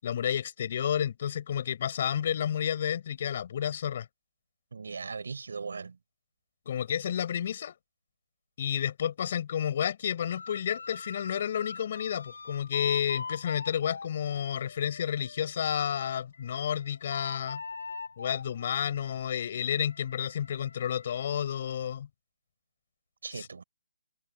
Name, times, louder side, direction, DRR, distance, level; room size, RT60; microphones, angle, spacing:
voice 1, 0.0-4.1 6.7-7.7 8.6-17.6 18.2-22.1 23.3-23.5, left 9 dB, 35° left, 6.2 m, -31 dB
voice 2, 4.7-6.0 23.2-23.6, right 5 dB, 65° right, 5.4 m, -38 dB
sound 1, 10.3-15.5 16.0-21.3, left 4 dB, 70° left, 6.7 m, -44 dB
open air
hypercardioid pair, 170°, 0 cm